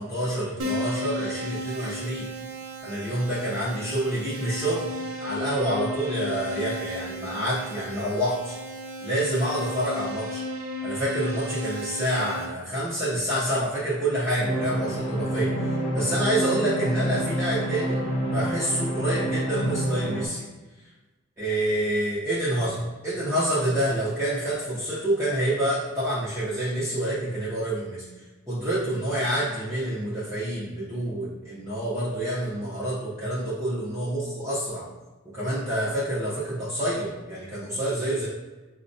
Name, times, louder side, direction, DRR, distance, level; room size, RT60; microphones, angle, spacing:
voice 1, 0.0-2.3 2.8-4.9 5.2-8.6 9.0-10.4 10.8-15.7 15.9-20.5 21.4-28.0 28.5-34.9 35.3-38.3, right 1 dB, 15° right, -10 dB, 0.6 m, -27 dB
Keyboard (musical), 0.6-12.5, equal, 70° right, 0.5 m, -35 dB
sound 1, 14.4-20.3, right 1 dB, 60° left, 0.7 m, -27 dB
4.3 x 2.1 x 2.6 m, 1.2 s
head